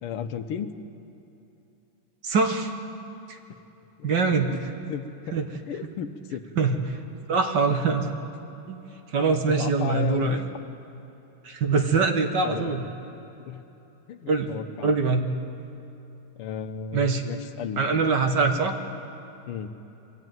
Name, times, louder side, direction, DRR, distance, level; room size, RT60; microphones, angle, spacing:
voice 1, 0.0-0.7 4.0-4.1 4.9-5.0 5.7-6.4 9.5-10.6 12.4-12.8 13.5-13.6 14.1-14.9 16.4-17.8 19.5-19.7, left 8 dB, 80° left, 9 dB, 1.8 m, -34 dB
voice 2, 2.2-2.7 3.3-3.4 4.0-4.6 5.3-5.5 6.5-7.0 7.3-8.1 8.7-8.8 9.1-10.4 11.4-12.8 14.3-14.5 14.8-15.3 16.9-17.2 17.8-18.8, right 4 dB, 55° right, 5 dB, 1.6 m, -23 dB
22.5 x 14.5 x 9.3 m, 2.9 s
omnidirectional pair, 2.4 m